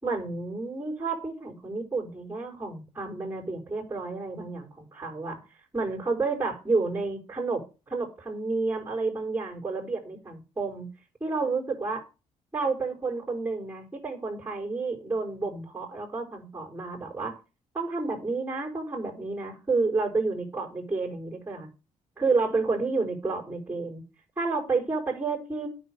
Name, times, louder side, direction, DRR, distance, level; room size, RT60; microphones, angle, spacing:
voice 1, 0.0-5.3 5.7-7.6 7.9-10.9 11.2-12.0 12.5-17.3 17.7-21.7 22.2-24.0 24.4-25.7, right 3 dB, 10° right, -3 dB, 5.7 m, -30 dB
9.4 x 6.5 x 8.2 m, 0.32 s
hypercardioid pair, 45°, 17 cm